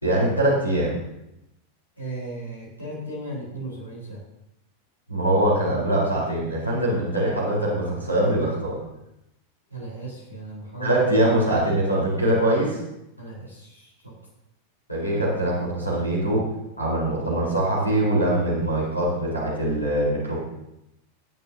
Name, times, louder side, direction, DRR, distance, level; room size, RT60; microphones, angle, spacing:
voice 1, 0.0-0.9 5.1-8.7 10.8-12.8 14.9-16.5 16.8-20.4, right 1 dB, 85° left, -5 dB, 4.1 m, -23 dB
voice 2, 2.0-4.2 9.7-11.3 13.2-14.2, right 2 dB, 90° right, -5 dB, 4.0 m, -36 dB
21.0 x 9.3 x 2.8 m, 0.88 s
figure-of-eight pair, 90°, 0 cm